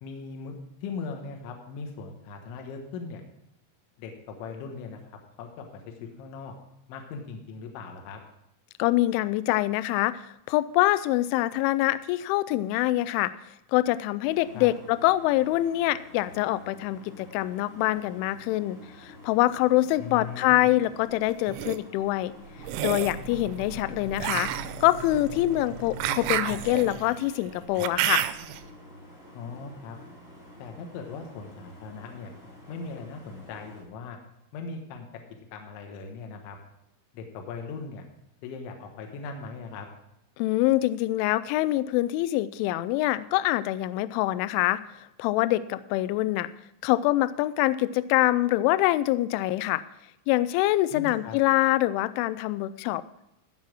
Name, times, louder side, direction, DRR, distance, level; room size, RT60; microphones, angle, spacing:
voice 1, 0.0-3.2 4.0-5.0 5.4-6.5 6.9-8.2 14.5-14.7 20.0-20.7 29.3-30.0 30.6-32.3 32.7-34.2 34.5-35.1 35.5-36.6 37.1-38.0 38.4-39.9 50.9-51.4, left 4 dB, 70° left, 3 dB, 3.3 m, -39 dB
voice 2, 8.8-13.3 13.7-22.3 22.8-28.2 40.4-44.8 45.2-46.5 46.8-49.8 50.3-53.0, left 16 dB, 90° left, 15 dB, 2.7 m, -25 dB
sound 1, 14.3-33.8, left 1 dB, 20° left, 2.3 m, -49 dB
sound 2, 21.3-21.8 22.6-23.2 24.2-28.6, right 13 dB, 90° right, 3.3 m, -30 dB
sound 3, 22.6-27.0, right 1 dB, 75° right, 3.7 m, -41 dB
15.5 x 5.7 x 6.1 m, 0.84 s
omnidirectional pair, 6.0 m